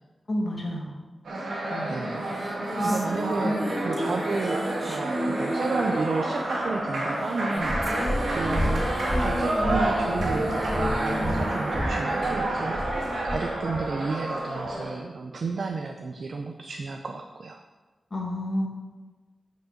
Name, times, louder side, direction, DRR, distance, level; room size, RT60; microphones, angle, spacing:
voice 1, 0.3-1.0 1.7-2.0 2.8-3.0 3.4-3.6 18.1-18.7, left 1 dB, 40° left, -1 dB, 1.9 m, -29 dB
sound 1, 1.2-15.0, right 1 dB, 85° right, 2.2 m, -29 dB
voice 2, 1.9-2.3 2.8-3.6 3.8-7.7 8.3-8.9 9.2-12.9 13.2-17.6, right 4 dB, 70° right, 4 dB, 0.6 m, -32 dB
sound 2, 2.3-12.7, equal, 10° right, 0.9 m, -34 dB
Purr, 7.6-13.9 14.6-14.7, left 1 dB, 20° left, 3.4 m, -31 dB
9.3 x 5.3 x 6.6 m, 1.3 s
wide cardioid pair, 115°, 0 cm